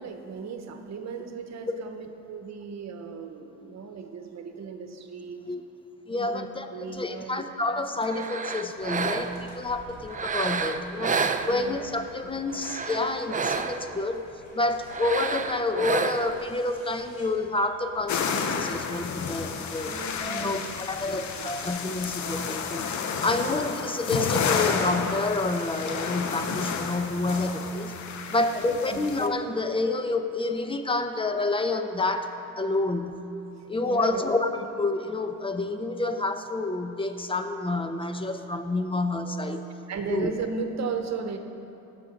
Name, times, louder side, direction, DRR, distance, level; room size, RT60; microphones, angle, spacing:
voice 1, 0.0-5.4 6.2-7.4 11.5-12.5 19.9-21.5 23.2-23.5 28.3-29.0 33.5-34.2 39.9-41.4, right 5 dB, 60° right, 6 dB, 1.2 m, -37 dB
voice 2, 6.1-11.2 11.5-14.2 14.5-19.9 20.2-22.9 23.2-28.0 28.3-32.3 32.6-33.2 33.7-39.6 40.1-40.3, left 2 dB, 15° left, 7 dB, 0.9 m, -28 dB
sound 1, 8.0-9.5 10.1-12.0 12.5-14.0 14.9-16.5, right 5 dB, 25° right, 0.6 m, -30 dB
sound 2, 8.8-22.3, left 1 dB, 85° left, 3.2 m, -50 dB
sound 3, 18.1-29.3, left 6 dB, 70° left, 1.0 m, -31 dB
17.0 x 6.9 x 5.4 m, 2.8 s
cardioid pair, 90°, 30 cm